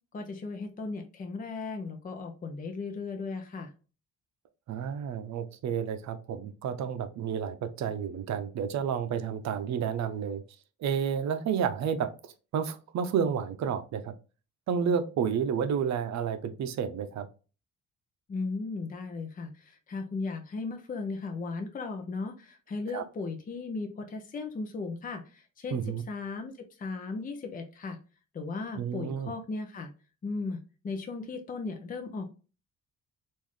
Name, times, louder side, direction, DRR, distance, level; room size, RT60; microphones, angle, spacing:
voice 1, 0.1-3.7 18.3-28.0 28.3-29.9 30.2-32.3, left 3 dB, 30° left, 5 dB, 0.6 m, -36 dB
voice 2, 4.7-10.4 10.8-14.1 14.7-17.3 22.9-23.0 25.7-26.0 28.8-29.3, right 7 dB, 65° right, 10 dB, 0.6 m, -31 dB
3.6 x 2.6 x 3.1 m, 0.34 s
cardioid pair, 90°, 30 cm